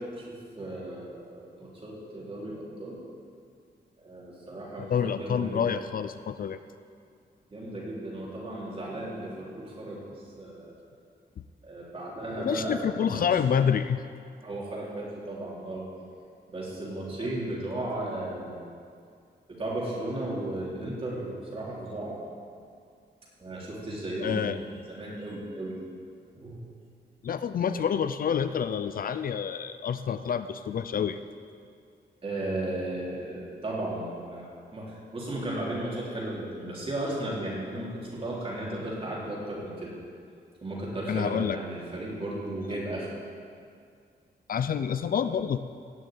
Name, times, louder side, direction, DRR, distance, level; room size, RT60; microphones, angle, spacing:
voice 1, 0.6-3.0 4.0-5.6 7.5-10.1 10.4-10.8 11.6-13.3 14.4-15.9 16.5-18.7 19.5-22.2 23.4-25.8 26.3-26.6 32.2-39.9 40.6-43.1, right 1 dB, 30° right, -5 dB, 3.7 m, -35 dB
voice 2, 4.8-6.6 12.3-14.0 24.2-24.6 27.2-31.2 41.1-41.6 44.5-45.6, left 7 dB, 55° left, 11 dB, 0.5 m, -28 dB
17.0 x 6.5 x 9.2 m, 2.3 s
wide cardioid pair, 180°, 18 cm